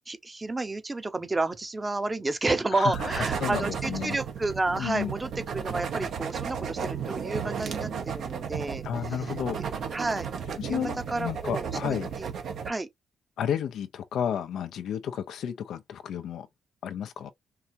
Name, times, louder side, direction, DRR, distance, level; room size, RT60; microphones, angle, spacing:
voice 1, 0.1-8.8 9.5-9.6 9.9-10.3 10.7-12.3 12.6-12.9, right 2 dB, 20° right, 0.9 m, -31 dB
voice 2, 2.7-4.2 4.8-5.1 8.8-9.6 10.6-12.1 13.4-16.5 16.8-17.3, left 9 dB, 70° left, 0.6 m, -32 dB
sound 1, 2.9-12.7, right 7 dB, 65° right, 1.2 m, -34 dB
4.6 x 2.8 x 2.8 m
cardioid pair, 90°, 0 cm